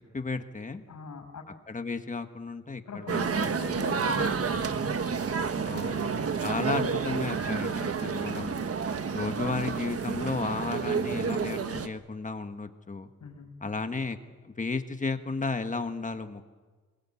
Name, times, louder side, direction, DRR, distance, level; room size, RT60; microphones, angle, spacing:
voice 1, 0.1-0.8 1.7-3.2 5.7-8.5 9.1-13.1 13.6-14.2 14.4-16.4, left 4 dB, 25° left, 7 dB, 1.5 m, -33 dB
voice 2, 0.9-1.4 2.8-5.0 5.8-6.3 13.2-13.5, left 4 dB, 70° left, 5 dB, 6.1 m, -41 dB
sound 1, 3.1-11.9, right 6 dB, 50° right, 1.3 m, -30 dB
27.5 x 21.0 x 8.4 m, 1.3 s
wide cardioid pair, 165°, 31 cm